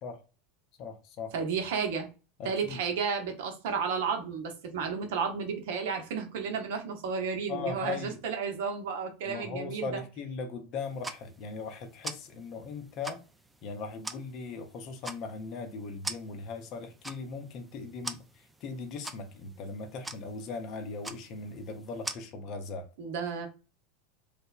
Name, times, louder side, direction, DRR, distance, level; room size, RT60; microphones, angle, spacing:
voice 1, 0.8-1.3 2.4-2.8 7.5-8.2 9.3-13.2 13.6-22.9, left 4 dB, 50° left, 0.6 m, -39 dB
voice 2, 1.3-2.1 2.4-10.0 23.0-23.5, right 5 dB, 65° right, 0.7 m, -32 dB
sound 1, 10.8-22.2, right 2 dB, 10° right, 0.3 m, -45 dB
3.1 x 2.1 x 2.3 m
hypercardioid pair, 85°, 0 cm